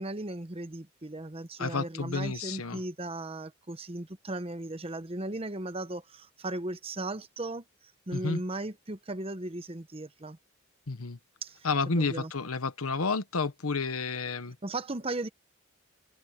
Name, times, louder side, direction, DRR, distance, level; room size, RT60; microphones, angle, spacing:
voice 1, 0.0-7.6 8.1-10.4 11.4-11.7 11.9-12.3 14.6-15.3, right 2 dB, 25° right, 0.9 m, -37 dB
voice 2, 1.6-2.8 8.1-8.4 10.9-11.2 11.6-14.6, left 4 dB, 80° left, 1.1 m, -30 dB
head